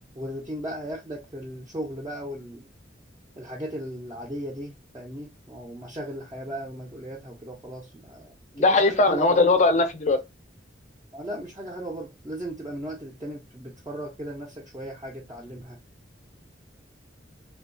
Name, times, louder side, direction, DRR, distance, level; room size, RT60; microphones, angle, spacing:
voice 1, 0.1-2.7 3.4-9.4 11.1-15.8, right 1 dB, 20° right, 0.4 m, -37 dB
voice 2, 8.6-10.2, left 3 dB, 40° left, 0.4 m, -20 dB
2.6 x 2.2 x 2.4 m
head